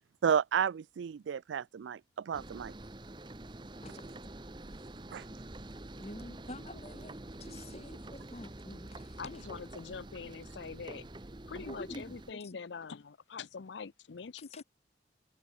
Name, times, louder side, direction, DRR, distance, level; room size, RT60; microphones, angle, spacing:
voice 1, 0.2-2.0 2.3-2.7 5.1-5.2, right 7 dB, 85° right, 0.4 m, -31 dB
sound 1, 2.3-12.3, right 1 dB, 25° right, 0.9 m, -47 dB
voice 2, 5.9-9.2 11.5-12.2 12.4-12.6 14.5-14.6, left 1 dB, 35° left, 3.5 m, -48 dB
voice 3, 9.2-11.0 11.5-14.6, left 5 dB, 75° left, 0.6 m, -44 dB
head